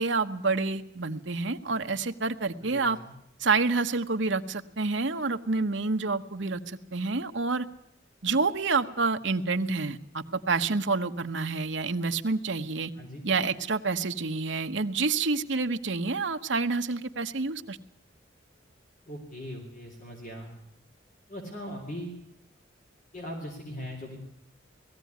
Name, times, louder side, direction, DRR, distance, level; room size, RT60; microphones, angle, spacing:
voice 1, 0.0-3.0 3.4-7.7 8.2-12.9 13.2-17.8, right 4 dB, 70° right, 7 dB, 1.1 m, -28 dB
voice 2, 2.6-3.1 12.9-13.2 19.1-20.5 21.3-22.2 23.1-24.2, equal, 40° left, 1 dB, 3.6 m, -40 dB
19.0 x 14.5 x 9.4 m, 0.76 s
head